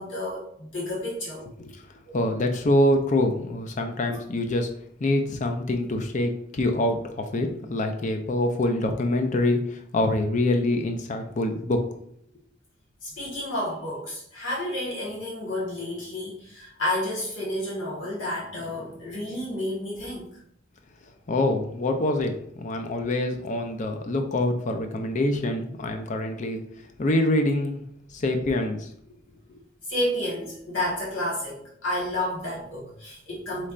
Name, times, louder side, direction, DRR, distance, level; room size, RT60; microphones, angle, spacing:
voice 1, 0.0-1.4 2.0-2.2 13.0-20.3 29.9-33.7, left 1 dB, 90° left, -6 dB, 1.5 m, -31 dB
voice 2, 2.1-4.7 5.0-11.8 21.3-27.8 28.1-28.9, left 1 dB, 40° left, 5 dB, 0.5 m, -25 dB
4.1 x 3.3 x 2.5 m, 0.68 s
head